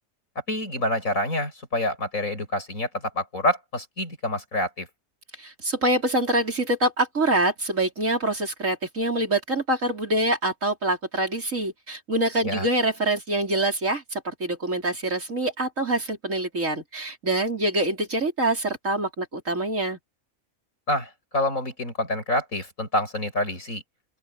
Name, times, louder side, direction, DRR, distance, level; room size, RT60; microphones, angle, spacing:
voice 1, 0.5-4.9 12.4-12.7 20.9-23.8, left 1 dB, 80° left, 7.4 m, -27 dB
voice 2, 5.4-20.0, right 1 dB, 70° right, 4.9 m, -25 dB
open air
omnidirectional pair, 1.4 m